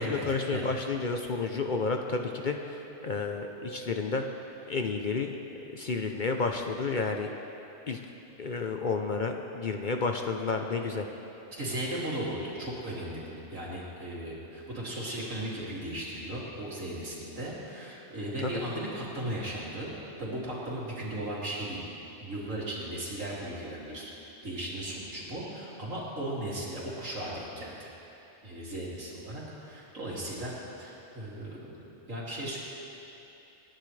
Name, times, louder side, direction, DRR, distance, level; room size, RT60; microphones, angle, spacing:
voice 1, 0.0-4.3 4.7-5.3 5.7-7.3 7.9-8.0 8.4-11.1 18.4-18.5, left 4 dB, 50° left, 4 dB, 0.7 m, -31 dB
voice 2, 11.6-21.8 22.2-27.9 28.4-32.6, right 1 dB, 85° right, -6 dB, 3.2 m, -36 dB
27.5 x 10.5 x 3.3 m, 3.0 s
omnidirectional pair, 1.3 m